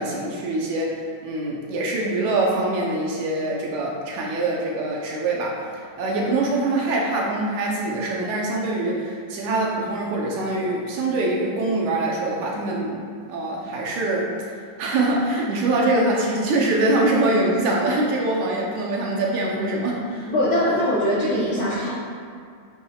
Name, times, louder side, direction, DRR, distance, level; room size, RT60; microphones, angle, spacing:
voice 1, 0.0-13.0 13.3-14.3 14.8-20.7, right 2 dB, 70° right, -2 dB, 2.0 m, -24 dB
voice 2, 20.3-21.9, equal, 65° left, -8 dB, 1.2 m, -22 dB
9.2 x 7.2 x 2.4 m, 2.2 s
omnidirectional pair, 3.9 m